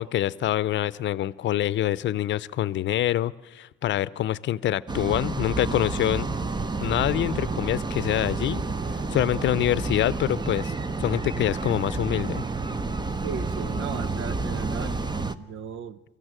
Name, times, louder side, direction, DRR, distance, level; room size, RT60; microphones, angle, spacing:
voice 1, 0.0-6.3 6.8-8.6 9.1-10.7 11.0-12.4, left 13 dB, 65° left, 19 dB, 0.6 m, -25 dB
sound 1, 4.9-15.3, right 3 dB, 20° right, 0.9 m, -30 dB
voice 2, 13.2-15.0 15.3-16.0, right 6 dB, 80° right, 16 dB, 0.9 m, -36 dB
23.5 x 14.5 x 9.0 m, 1.1 s
cardioid pair, 90°, 20 cm